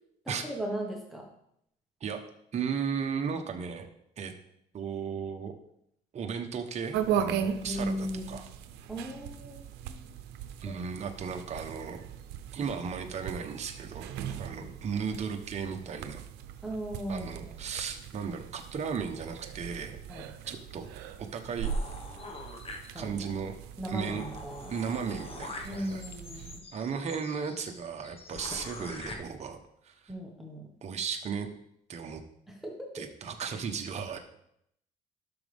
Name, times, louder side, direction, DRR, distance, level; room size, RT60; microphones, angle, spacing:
voice 1, 0.2-1.3 7.6-8.3 8.9-10.1 10.7-10.8 14.5-14.7 16.6-17.5 20.1-20.3 22.9-23.3 23.8-24.8 25.6-26.6 30.1-30.6 32.5-32.9, equal, ahead, 0 dB, 1.5 m, -37 dB
voice 2, 2.5-3.9 4.2-4.3 4.7-5.5 6.1-8.4 10.6-12.0 12.5-16.2 17.1-20.0 20.5-20.9 21.2-21.7 22.9-23.6 23.9-24.2 24.7-26.0 26.3-30.1 30.8-31.5 31.9-32.2 32.9-34.2, right 6 dB, 40° right, 4 dB, 1.1 m, -35 dB
sound 1, 6.9-26.6, right 8 dB, 85° right, 0.7 m, -39 dB
sound 2, 21.6-23.3 23.7-23.8 24.0-29.1, left 2 dB, 35° left, 1.5 m, -45 dB
12.0 x 6.3 x 3.6 m, 0.74 s
cardioid pair, 110°, 17 cm